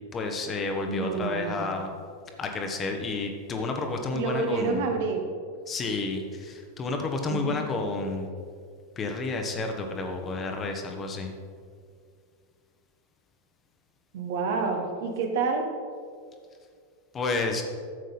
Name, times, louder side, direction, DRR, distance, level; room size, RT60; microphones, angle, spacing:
voice 1, 0.1-1.9 2.4-4.9 5.7-8.3 9.0-11.4 17.1-17.6, left 3 dB, 25° left, 4 dB, 1.2 m, -30 dB
voice 2, 0.9-1.8 4.1-5.2 7.3-7.6 14.1-15.7, right 4 dB, 55° right, 3 dB, 1.4 m, -29 dB
12.0 x 8.0 x 4.1 m, 2.1 s
figure-of-eight pair, 90°, 0 cm